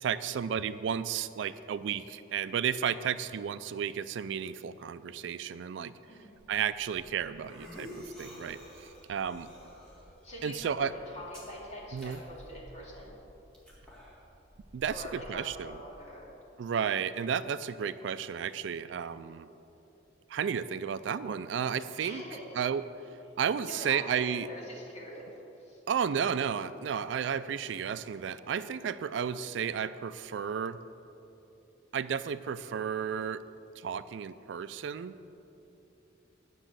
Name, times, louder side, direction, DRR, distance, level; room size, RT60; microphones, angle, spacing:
voice 1, 0.0-5.9 6.5-7.9 8.2-9.5 10.4-10.9 11.9-12.2 14.7-15.8 16.6-19.5 20.3-22.2 22.6-22.8 23.4-24.5 25.9-30.8 31.9-33.4 33.8-35.1, right 7 dB, 75° right, 14 dB, 0.3 m, -33 dB
sound 1, 6.3-15.8, equal, 5° left, 2.1 m, -51 dB
voice 2, 10.2-13.2 14.9-16.3 22.0-22.5 23.6-25.3 25.6-25.8, equal, 35° left, -4 dB, 2.4 m, -44 dB
10.0 x 6.2 x 7.4 m, 2.9 s
head